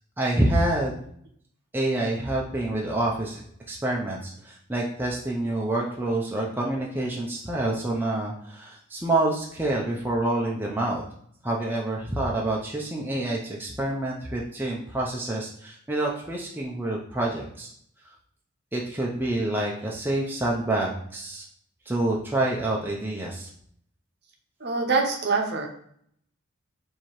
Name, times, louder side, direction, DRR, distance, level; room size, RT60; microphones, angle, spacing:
voice 1, 0.2-1.0 1.7-3.4 3.7-11.0 11.4-17.7 18.7-21.4 21.9-23.5, right 1 dB, 10° right, -3 dB, 0.4 m, -27 dB
voice 2, 24.6-25.7, right 4 dB, 50° right, 2 dB, 0.7 m, -24 dB
4.6 x 2.7 x 3.0 m, 0.65 s
head